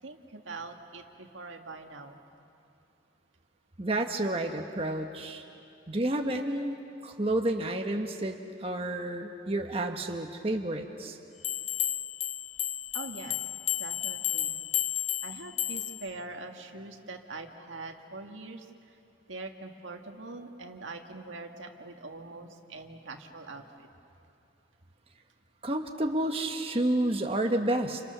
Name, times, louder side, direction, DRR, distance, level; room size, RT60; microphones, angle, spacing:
voice 1, 0.0-2.2 12.9-13.4 13.8-14.7 15.2-18.7 19.3-23.9, right 3 dB, 90° right, 3 dB, 2.0 m, -43 dB
voice 2, 3.8-5.4 5.9-6.8 7.0-11.2 25.6-28.0, right 1 dB, 30° right, 3 dB, 1.2 m, -30 dB
sound 1, 11.4-16.1, left 12 dB, 35° left, 0.6 m, -32 dB
29.5 x 29.0 x 6.8 m, 2.7 s
head